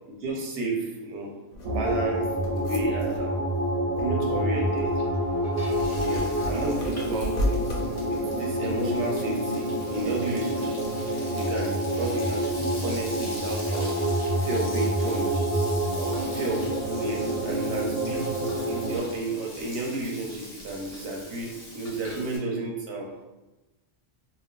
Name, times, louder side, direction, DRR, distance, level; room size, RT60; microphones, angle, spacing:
voice 1, 0.1-1.3 1.7-3.4 4.0-5.0 6.0-10.8 11.4-14.0 14.4-15.5 15.9-18.3 18.6-23.1, right 2 dB, 90° right, -1 dB, 0.9 m, -32 dB
sound 1, 1.5-9.0, left 1 dB, 60° left, 0.7 m, -35 dB
sound 2, 1.6-19.0, right 1 dB, 45° right, 0.6 m, -28 dB
Frying (food), 5.1-22.4, left 1 dB, 20° left, 0.6 m, -43 dB
2.3 x 2.2 x 3.6 m, 1.1 s
omnidirectional pair, 1.1 m